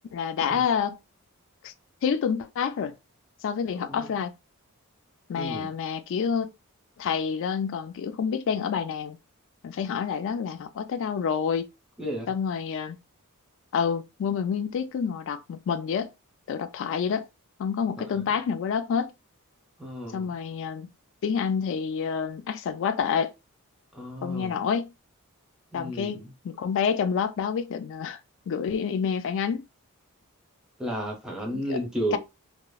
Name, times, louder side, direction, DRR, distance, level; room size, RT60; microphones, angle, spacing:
voice 1, 0.1-1.0 1.6-1.7 2.0-2.9 3.4-4.3 5.3-6.5 7.0-9.2 9.6-11.7 12.3-13.0 13.7-16.1 16.5-17.2 17.6-19.1 20.1-20.9 21.2-23.3 24.2-24.9 25.7-28.2 28.5-29.7 31.5-31.8 32.1-32.2, left 6 dB, 60° left, 0.3 m, -28 dB
voice 2, 3.8-4.1 5.3-5.7 12.0-12.3 18.0-18.3 19.8-20.3 23.9-24.6 25.7-26.3 30.8-32.2, equal, 5° right, 0.7 m, -33 dB
2.9 x 2.0 x 2.3 m
head